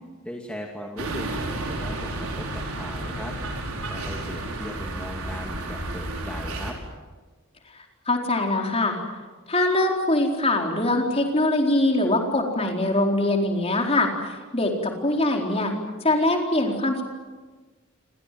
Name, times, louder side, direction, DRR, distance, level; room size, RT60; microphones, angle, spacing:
voice 1, 0.2-1.3 1.6-3.4 3.7-6.8, equal, 5° left, 0 dB, 2.5 m, -38 dB
sound 1, 1.0-6.7, right 2 dB, 80° right, 5.8 m, -31 dB
voice 2, 7.7-9.0 9.5-15.7 16.0-17.0, left 2 dB, 25° left, 2 dB, 4.4 m, -23 dB
29.0 x 25.5 x 7.8 m, 1.4 s
head